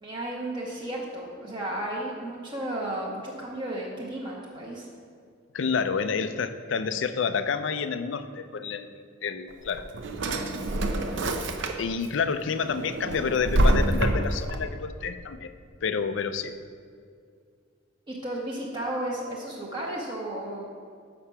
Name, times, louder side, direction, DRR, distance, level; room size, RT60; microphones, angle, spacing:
voice 1, 0.0-4.9 18.1-20.7, right 1 dB, 25° right, -5 dB, 1.0 m, -33 dB
voice 2, 5.5-8.9 9.2-9.9 11.8-15.5 15.8-16.6, left 5 dB, 65° left, 11 dB, 0.4 m, -29 dB
Drawer open or close, 9.5-12.1 12.5-14.6, right 1 dB, 65° right, 0.7 m, -26 dB
6.7 x 5.8 x 5.6 m, 2.2 s
head